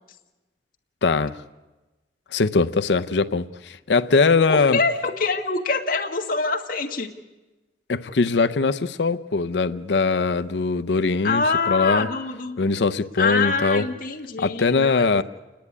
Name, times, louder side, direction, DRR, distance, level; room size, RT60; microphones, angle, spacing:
voice 1, 1.0-1.4 2.3-4.8 7.9-12.1 12.6-13.8 14.4-15.2, left 4 dB, 80° left, 10 dB, 0.6 m, -21 dB
voice 2, 4.5-7.1 11.2-12.6 13.2-15.2, left 4 dB, 55° left, 2 dB, 1.8 m, -25 dB
29.0 x 10.5 x 9.6 m, 1.1 s
head